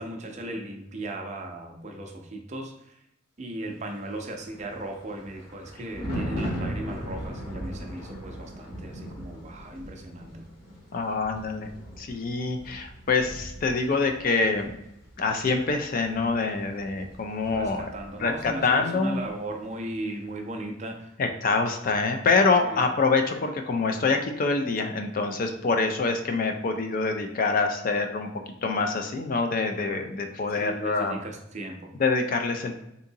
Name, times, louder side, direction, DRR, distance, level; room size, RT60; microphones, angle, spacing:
voice 1, 0.0-2.9 3.4-10.4 17.5-21.1 22.6-22.9 30.5-31.9, right 1 dB, 35° right, 3 dB, 0.5 m, -37 dB
Thunder, 4.2-18.7 19.0-19.3, equal, 30° left, 1.3 m, -39 dB
voice 2, 10.9-11.7 12.0-14.7 15.2-17.9 18.2-19.2 21.2-28.3 28.6-31.2 32.0-32.8, left 4 dB, 45° left, 6 dB, 0.4 m, -25 dB
3.7 x 2.7 x 2.7 m, 0.83 s
head